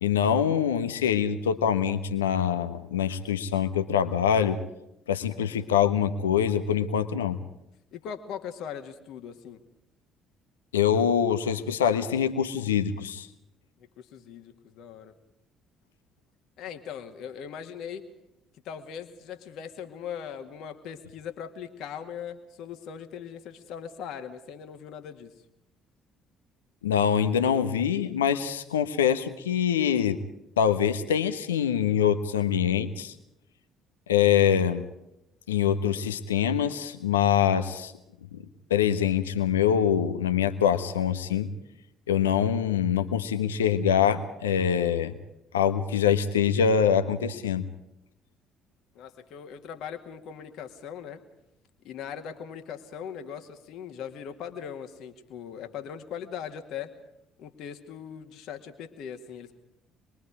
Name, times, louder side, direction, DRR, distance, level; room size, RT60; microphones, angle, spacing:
voice 1, 0.0-4.6 5.1-7.4 10.7-13.3 26.8-30.2 30.6-33.1 34.1-34.9 35.5-37.9 38.3-38.4 38.7-41.5 42.1-45.1 45.5-47.6, left 8 dB, 80° left, 10 dB, 1.3 m, -24 dB
voice 2, 7.9-9.6 14.0-15.1 16.6-18.0 18.6-25.3 48.9-51.2 51.8-56.9 57.4-59.6, left 8 dB, 60° left, 6 dB, 2.0 m, -40 dB
26.0 x 22.0 x 4.9 m, 0.85 s
figure-of-eight pair, 50°, 0 cm